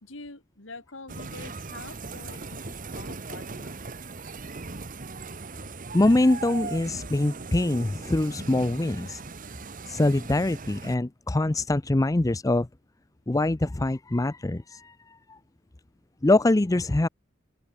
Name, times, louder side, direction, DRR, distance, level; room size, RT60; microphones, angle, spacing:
voice 1, 0.0-3.8, left 3 dB, 75° left, 3.0 m, -45 dB
sound 1, 1.1-10.9, right 3 dB, 45° right, 1.3 m, -39 dB
voice 2, 5.9-9.2 9.9-12.7 13.3-15.4 16.2-17.1, left 2 dB, 15° left, 0.5 m, -24 dB
open air
head